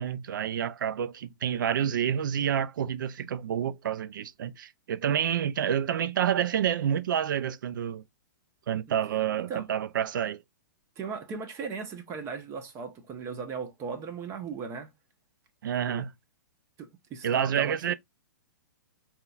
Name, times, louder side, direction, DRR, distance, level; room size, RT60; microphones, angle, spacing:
voice 1, 0.0-8.0 8.7-10.4 15.6-16.1 17.2-17.9, right 9 dB, 75° right, 0.4 m, -28 dB
voice 2, 11.0-14.9 15.9-16.1 16.8-17.9, right 5 dB, 30° right, 0.8 m, -37 dB
3.7 x 2.9 x 2.3 m
hypercardioid pair, 135°, 11 cm